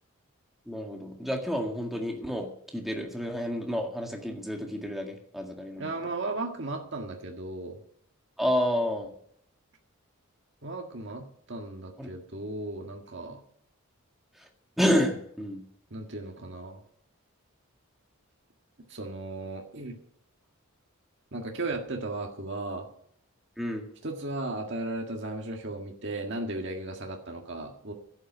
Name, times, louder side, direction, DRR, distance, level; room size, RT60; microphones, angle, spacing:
voice 1, 0.7-2.5 2.7-5.9 8.4-9.1 12.0-12.1 14.8-15.6 23.6-23.9, equal, ahead, 1 dB, 1.9 m, -29 dB
voice 2, 5.8-7.8 10.6-13.4 15.9-16.8 18.9-20.0 21.3-22.9 24.0-27.9, right 2 dB, 50° right, 2 dB, 1.8 m, -35 dB
11.5 x 9.1 x 9.1 m, 0.66 s
head